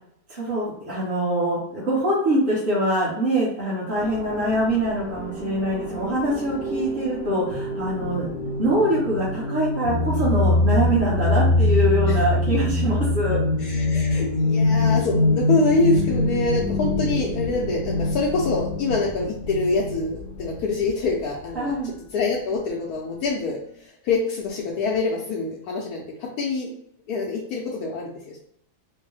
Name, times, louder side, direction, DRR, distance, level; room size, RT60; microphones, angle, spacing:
voice 1, 0.3-8.3 8.6-13.4 21.5-21.9, right 1 dB, 35° right, -9 dB, 1.2 m, -24 dB
sound 1, 4.0-21.1, left 2 dB, 75° right, 2.0 m, -24 dB
voice 2, 13.6-21.7 22.1-26.7 27.1-28.4, left 3 dB, 80° left, -4 dB, 1.2 m, -25 dB
4.4 x 2.1 x 3.2 m, 0.70 s
omnidirectional pair, 1.6 m